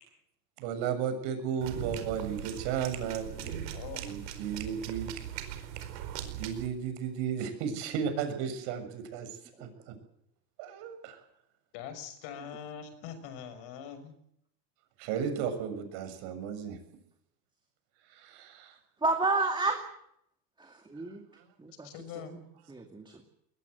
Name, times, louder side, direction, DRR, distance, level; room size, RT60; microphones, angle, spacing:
voice 1, 0.6-3.3 4.0-5.1 6.3-9.7 10.6-11.2 15.0-16.8 18.0-18.8 21.4-21.5, right 7 dB, 60° right, 8 dB, 7.1 m, -34 dB
sound 1, 1.6-6.7, right 10 dB, 90° right, 4.7 m, -40 dB
voice 2, 3.3-4.0 4.3-4.4 11.7-14.2 21.8-22.4, left 8 dB, 60° left, 10 dB, 6.2 m, -43 dB
voice 3, 19.0-19.8 20.6-21.2 21.6-21.9 22.3-22.4 22.7-23.2, right 3 dB, 10° right, 4 dB, 2.4 m, -30 dB
21.5 x 20.0 x 8.1 m, 0.74 s
supercardioid pair, 135°, 49 cm